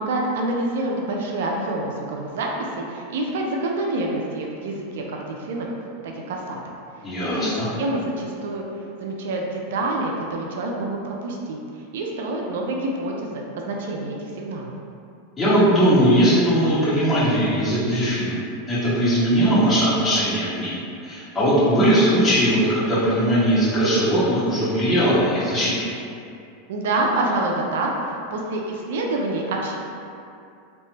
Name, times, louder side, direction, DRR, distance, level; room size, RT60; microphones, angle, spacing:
voice 1, 0.0-5.7 6.0-6.6 7.3-8.6 9.0-11.6 11.9-14.7 26.7-29.7, right 2 dB, 75° right, 0 dB, 0.3 m, -27 dB
voice 2, 7.0-7.7 15.4-18.3 18.7-20.7 21.0-25.8, equal, 15° left, -13 dB, 1.5 m, -19 dB
2.8 x 2.1 x 3.2 m, 2.5 s
hypercardioid pair, 105°, 0 cm